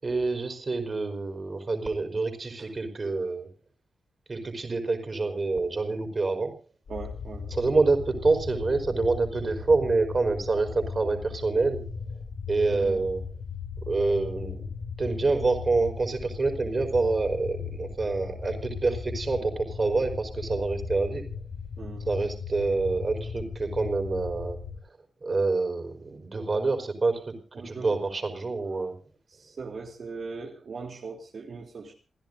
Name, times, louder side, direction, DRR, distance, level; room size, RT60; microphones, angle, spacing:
voice 1, 0.0-3.5 4.3-6.5 7.5-11.8 12.5-13.2 13.8-14.6 15.0-21.3 22.1-24.6 25.2-29.0, right 3 dB, 35° right, 6 dB, 5.2 m, -27 dB
sound 1, 6.9-24.8, left 5 dB, 70° left, 2.7 m, -37 dB
voice 2, 6.9-7.5 12.7-13.0 21.8-22.1 27.5-28.1 29.3-31.9, right 4 dB, 55° right, 0 dB, 3.4 m, -39 dB
29.0 x 16.0 x 2.7 m, 0.38 s
wide cardioid pair, 120°, 0 cm